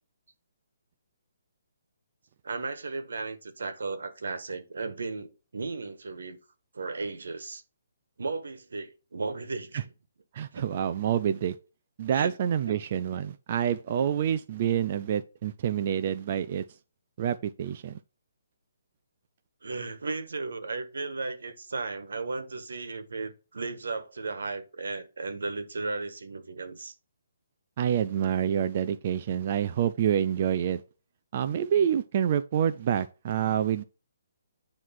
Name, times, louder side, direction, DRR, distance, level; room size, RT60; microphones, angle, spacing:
voice 1, 2.4-6.4 6.7-7.6 8.2-9.9 10.5-10.8 12.1-12.8 19.6-26.9, right 3 dB, 85° right, 1.4 m, -35 dB
voice 2, 10.3-11.6 12.0-16.6 17.2-18.0 27.8-30.8 31.3-33.8, right 9 dB, 30° right, 0.4 m, -27 dB
9.3 x 3.2 x 5.8 m
hypercardioid pair, 175°, 0 cm